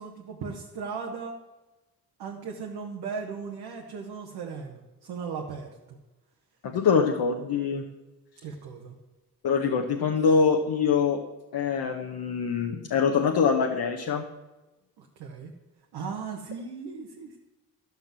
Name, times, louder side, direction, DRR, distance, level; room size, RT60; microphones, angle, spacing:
voice 1, 0.0-1.3 2.2-6.0 8.4-8.9 15.0-15.5 15.9-17.4, right 5 dB, 80° right, 0 dB, 1.4 m, -37 dB
voice 2, 6.6-7.8 9.4-11.2 11.5-14.2, left 5 dB, 70° left, 2 dB, 1.2 m, -24 dB
12.5 x 5.9 x 7.6 m, 1.1 s
supercardioid pair, 60°, 39 cm